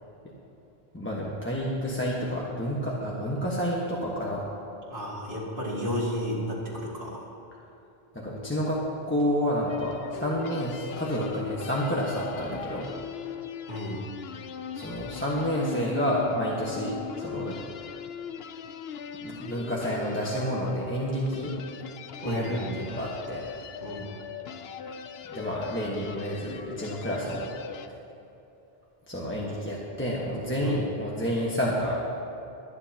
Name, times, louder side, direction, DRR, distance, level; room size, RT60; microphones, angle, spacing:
voice 1, 0.9-4.4 8.1-8.8 9.1-12.8 14.7-17.6 19.2-21.5 22.2-23.4 25.3-27.5 29.1-32.0, equal, 10° left, -5 dB, 1.3 m, -29 dB
voice 2, 4.9-7.3 13.7-14.0 22.2-22.8 23.8-24.1 30.6-30.8, equal, 80° right, -7 dB, 2.4 m, -32 dB
sound 1, 9.7-27.9, left 7 dB, 80° left, 0.9 m, -40 dB
23.0 x 9.8 x 2.9 m, 2.9 s
omnidirectional pair, 1.0 m